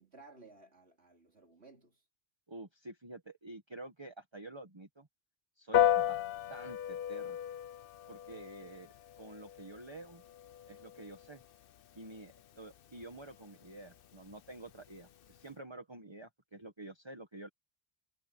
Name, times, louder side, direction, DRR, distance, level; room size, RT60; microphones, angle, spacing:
voice 1, 0.0-2.0 8.3-8.5, right 3 dB, 85° right, 4.2 m, -58 dB
voice 2, 2.5-5.1 5.6-6.2 6.5-7.4 8.1-10.2 10.7-11.4 11.9-17.5, right 2 dB, 25° right, 1.6 m, -49 dB
Piano, 5.7-15.5, left 11 dB, 65° left, 0.8 m, -36 dB
omnidirectional pair, 1.1 m